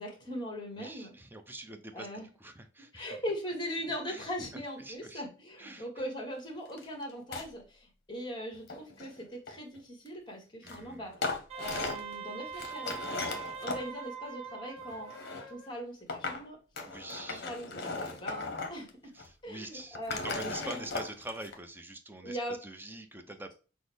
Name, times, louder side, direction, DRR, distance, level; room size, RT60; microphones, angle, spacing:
voice 1, 0.0-1.1 1.9-2.3 2.9-11.1 11.5-13.0 13.6-15.1 15.5-16.6 17.3-19.1 19.4-20.8 22.2-22.6, equal, 25° left, 1 dB, 1.3 m, -40 dB
voice 2, 0.8-2.1 2.4-3.1 4.1-4.3 4.8-5.2 5.6-5.9 10.6-11.1 16.8-17.4 19.1-23.5, right 2 dB, 10° right, 7 dB, 0.5 m, -44 dB
sound 1, 6.8-6.9 7.1-7.5 8.5-9.8 10.7-10.8 11.1-12.1 12.5-13.8 14.8-15.5 16.1-16.4 16.8-18.9 19.2-19.3 19.8-21.5, left 3 dB, 55° left, 0.8 m, -37 dB
Wind instrument woodwind instrument, 11.5-15.7, right 6 dB, 35° right, 1.0 m, -43 dB
6.0 x 2.0 x 3.3 m, 0.36 s
head